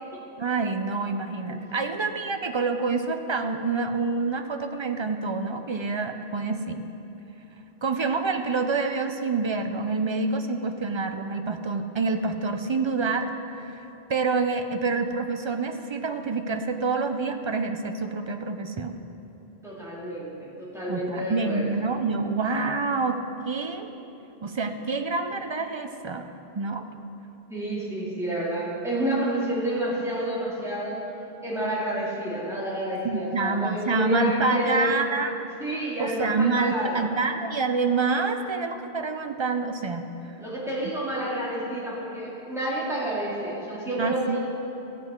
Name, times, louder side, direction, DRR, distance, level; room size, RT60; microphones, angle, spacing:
voice 1, 0.4-6.9 7.8-19.0 20.9-23.9 24.4-26.3 26.5-26.8 33.0-35.3 36.0-40.1 44.0-44.4, right 4 dB, 45° right, 6 dB, 0.4 m, -27 dB
voice 2, 19.6-21.7 27.5-31.0 31.4-34.9 35.6-37.0 40.4-44.4, right 1 dB, 5° right, -8 dB, 2.6 m, -29 dB
14.5 x 7.8 x 4.4 m, 2.9 s
omnidirectional pair, 1.1 m